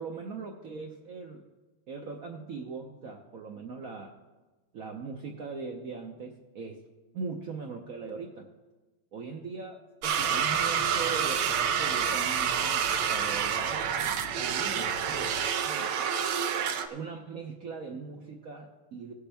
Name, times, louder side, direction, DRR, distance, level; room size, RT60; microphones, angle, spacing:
voice 1, 0.0-1.5 1.9-4.2 4.7-6.8 7.1-8.5 9.1-9.8 10.0-15.3 15.6-15.9 16.9-19.1, right 4 dB, 70° right, 2 dB, 0.8 m, -40 dB
sound 1, 10.0-16.9, right 8 dB, 90° right, 1.7 m, -28 dB
sound 2, 10.2-15.5, left 3 dB, 75° left, 1.8 m, -47 dB
17.0 x 7.1 x 3.4 m, 1.2 s
omnidirectional pair, 2.3 m